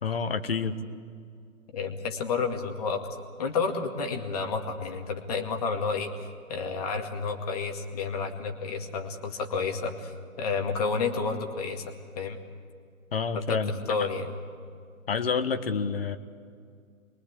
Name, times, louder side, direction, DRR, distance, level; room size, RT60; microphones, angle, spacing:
voice 1, 0.0-0.7 13.1-14.1 15.1-16.2, left 5 dB, 40° left, 10 dB, 1.4 m, -28 dB
voice 2, 1.7-3.0 3.4-12.4 13.3-13.6 13.9-14.3, left 4 dB, 25° left, 3 dB, 2.2 m, -30 dB
27.5 x 22.5 x 8.5 m, 2.2 s
figure-of-eight pair, 140°, 43 cm